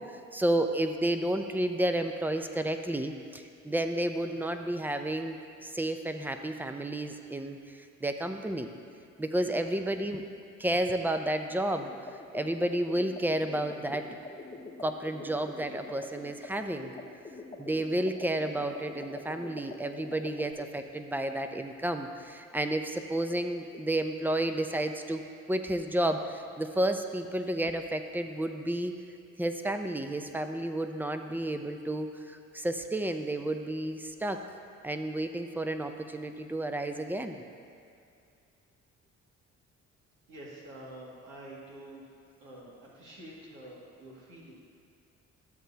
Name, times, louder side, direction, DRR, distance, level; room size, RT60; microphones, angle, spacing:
voice 1, 0.0-8.7 9.2-10.3 10.6-11.9 12.3-14.1 14.8-16.9 17.6-28.9 29.4-34.4 34.8-37.4, right 1 dB, 5° right, 7 dB, 0.5 m, -31 dB
sound 1, 11.8-20.5, left 3 dB, 25° left, 0.9 m, -45 dB
voice 2, 40.3-42.0 42.4-44.5, right 1 dB, 90° right, -6 dB, 2.2 m, -47 dB
13.0 x 7.7 x 2.8 m, 2.4 s
cardioid pair, 90°, 30 cm